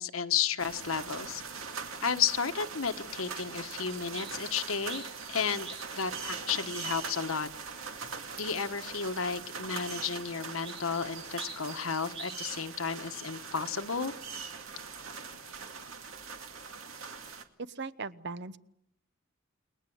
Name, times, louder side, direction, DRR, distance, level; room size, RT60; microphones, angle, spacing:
voice 1, 0.0-1.4 2.0-5.0 5.3-5.7 6.0-7.5 8.4-14.1, left 6 dB, 75° left, 9 dB, 1.3 m, -32 dB
sound 1, 0.6-17.4, right 5 dB, 75° right, 2.3 m, -42 dB
sound 2, 3.6-8.6 8.9-12.8, right 4 dB, 30° right, 2.4 m, -50 dB
voice 2, 17.6-18.6, right 4 dB, 55° right, 14 dB, 1.0 m, -38 dB
29.5 x 21.5 x 8.0 m, 0.79 s
head